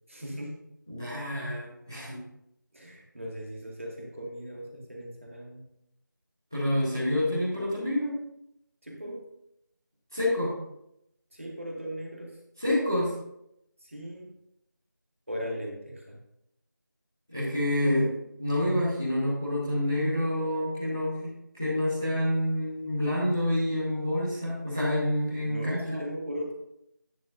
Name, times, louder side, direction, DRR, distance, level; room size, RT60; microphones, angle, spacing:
voice 1, 0.1-0.6 2.7-5.6 8.8-9.2 11.3-12.4 13.8-14.3 15.3-16.2 25.4-26.5, equal, 40° right, -1 dB, 2.0 m, -38 dB
voice 2, 0.9-2.2 6.5-8.2 10.1-10.5 12.6-13.1 17.3-18.1 18.4-21.3 21.6-26.0, left 1 dB, 10° right, -12 dB, 1.0 m, -28 dB
10.0 x 9.7 x 2.6 m, 0.81 s
figure-of-eight pair, 180°, 11 cm